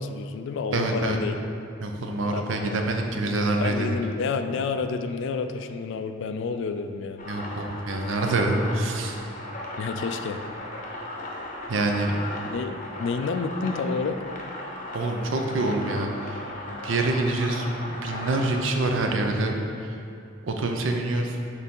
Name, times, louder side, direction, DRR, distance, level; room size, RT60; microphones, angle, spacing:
voice 1, 0.0-1.4 2.3-2.8 3.6-7.2 9.8-10.4 12.5-14.2, left 5 dB, 60° left, 8 dB, 0.3 m, -29 dB
voice 2, 0.7-1.2 1.8-3.9 7.3-9.2 11.7-12.1 14.9-16.5 16.8-20.0 20.4-21.4, right 2 dB, 65° right, 3 dB, 0.6 m, -26 dB
sound 1, 7.2-18.6, left 1 dB, 40° left, 0.7 m, -37 dB
6.5 x 4.0 x 3.8 m, 2.5 s
head